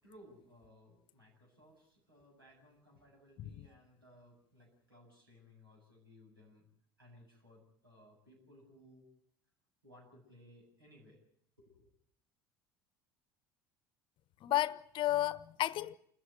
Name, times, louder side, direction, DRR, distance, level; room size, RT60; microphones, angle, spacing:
voice 1, 0.0-6.6 7.0-9.1 9.8-11.2 11.6-11.9, left 1 dB, 85° right, 8.0 m, -61 dB
voice 2, 14.4-16.0, left 14 dB, 45° left, 0.9 m, -33 dB
28.5 x 14.5 x 9.7 m
figure-of-eight pair, 65°, 12 cm